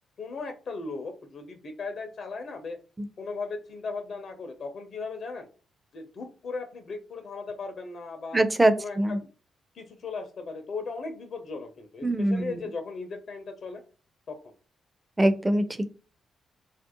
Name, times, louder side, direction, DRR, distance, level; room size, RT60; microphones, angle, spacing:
voice 1, 0.2-2.8 3.2-5.5 5.9-8.4 8.8-9.3 9.7-13.8 14.3-14.5, left 4 dB, 60° left, 6 dB, 0.5 m, -37 dB
voice 2, 8.3-9.2 12.0-12.6 15.2-15.7, right 1 dB, 20° right, 10 dB, 0.4 m, -23 dB
2.5 x 2.0 x 2.8 m, 0.35 s
hypercardioid pair, 45°, 0 cm